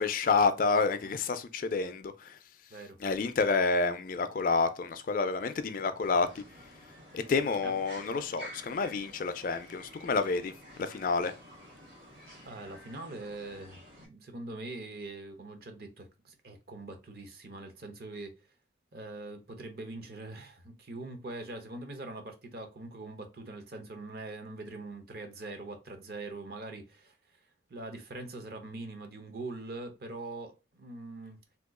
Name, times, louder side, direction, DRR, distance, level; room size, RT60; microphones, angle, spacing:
voice 1, 0.0-2.4 3.0-6.4 7.1-10.5 10.8-11.3, left 4 dB, 45° left, 0.3 m, -29 dB
sound 1, 6.0-14.1, equal, 80° right, 1.5 m, -51 dB
voice 2, 12.4-18.4 18.9-27.1 27.7-31.4, right 2 dB, 55° right, 0.7 m, -43 dB
2.9 x 2.3 x 3.6 m
head